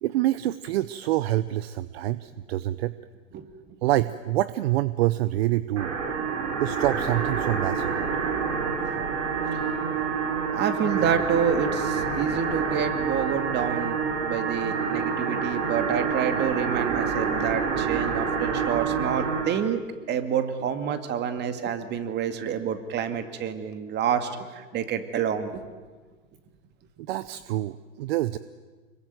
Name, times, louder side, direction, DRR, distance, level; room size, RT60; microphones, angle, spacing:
voice 1, 0.0-2.9 3.8-5.9 6.6-8.0 27.0-28.4, right 15 dB, 50° right, 16 dB, 0.8 m, -26 dB
sound 1, 5.8-19.5, right 5 dB, 70° right, 5.7 m, -27 dB
voice 2, 10.5-19.8 20.1-25.6, right 8 dB, 25° right, 9 dB, 2.2 m, -28 dB
26.0 x 22.5 x 9.2 m, 1.4 s
hypercardioid pair, 125°, 39 cm